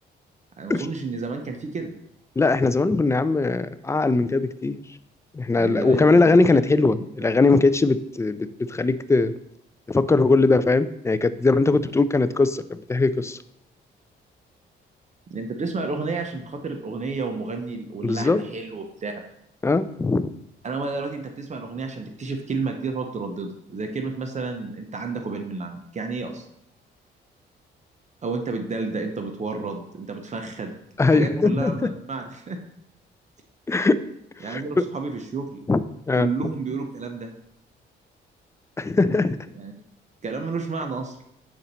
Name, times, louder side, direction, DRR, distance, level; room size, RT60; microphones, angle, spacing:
voice 1, 0.6-1.9 5.5-6.2 15.3-19.1 20.6-26.5 28.2-30.8 31.0-32.6 34.4-35.6 36.1-37.3 39.5-39.7 40.2-41.2, right 4 dB, 35° right, 5 dB, 0.8 m, -31 dB
voice 2, 2.4-4.8 5.3-9.3 9.9-13.4 18.0-18.4 19.6-20.3 31.0-31.8 33.7-34.0 34.5-34.8 35.7-35.8 36.1-36.3 38.8-39.4, left 3 dB, 15° left, 13 dB, 0.3 m, -20 dB
7.1 x 3.9 x 4.2 m, 0.75 s
cardioid pair, 90°, 20 cm